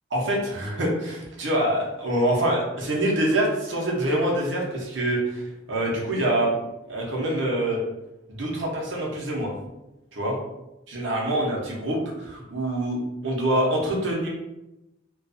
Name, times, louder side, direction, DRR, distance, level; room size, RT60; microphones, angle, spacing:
voice 1, 0.1-6.5 6.9-7.8 8.3-9.5 10.1-10.4 10.9-14.3, right 1 dB, 65° right, -2 dB, 0.7 m, -25 dB
2.5 x 2.3 x 2.5 m, 0.94 s
head